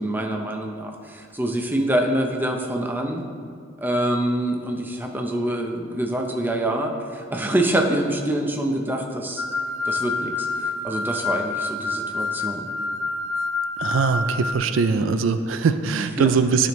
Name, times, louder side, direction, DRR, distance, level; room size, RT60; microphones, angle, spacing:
voice 1, 0.0-3.3 3.8-9.4 9.8-12.7 14.9-15.2 16.2-16.3, right 1 dB, 10° right, 2 dB, 0.6 m, -25 dB
sound 1, 9.4-14.6, left 3 dB, 75° left, 0.4 m, -27 dB
voice 2, 13.8-16.7, right 5 dB, 85° right, 10 dB, 0.4 m, -21 dB
12.0 x 5.2 x 3.1 m, 2.1 s
head